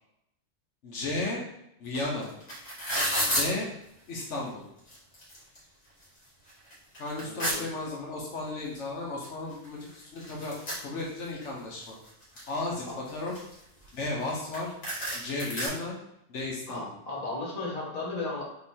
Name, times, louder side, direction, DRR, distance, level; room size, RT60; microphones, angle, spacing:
voice 1, 0.8-1.4 1.8-2.3 3.3-3.7 4.1-4.6 7.0-10.5 10.8-12.0 12.5-13.3 13.9-14.7 15.1-15.9 16.3-16.9, left 2 dB, 75° left, -2 dB, 1.1 m, -34 dB
sound 1, 2.0-2.1 2.2-3.5 4.3-4.4 4.8-5.6 6.0-6.1 6.5-7.6 8.8-8.9 9.2-9.3 9.5-11.5 11.9-12.5 13.1-14.3 14.5-14.6 14.8-15.7, equal, 55° left, 2.0 m, -31 dB
voice 2, 7.2-7.7 12.8-13.0 16.7-18.5, left 3 dB, 35° left, -4 dB, 1.3 m, -35 dB
3.8 x 3.0 x 4.2 m, 0.82 s
omnidirectional pair, 1.2 m